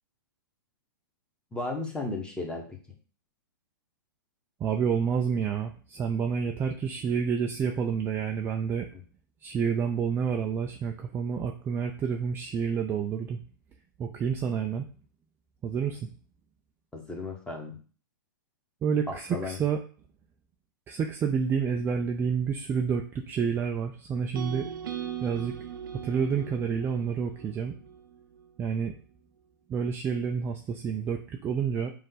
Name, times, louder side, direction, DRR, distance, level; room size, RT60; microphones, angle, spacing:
voice 1, 1.5-2.8 8.9-9.0 16.9-17.8 19.1-19.6, left 2 dB, 10° left, 1 dB, 1.2 m, -35 dB
voice 2, 4.6-8.9 9.4-13.4 14.0-14.8 15.6-16.1 18.8-19.8 20.9-24.7 25.2-25.5 26.0-27.8 28.6-28.9 29.7-31.9, right 6 dB, 20° right, 3 dB, 0.4 m, -29 dB
sound 1, 24.3-28.5, right 9 dB, 70° right, 0.6 m, -39 dB
5.1 x 2.6 x 3.9 m, 0.40 s
hypercardioid pair, 120°, 11 cm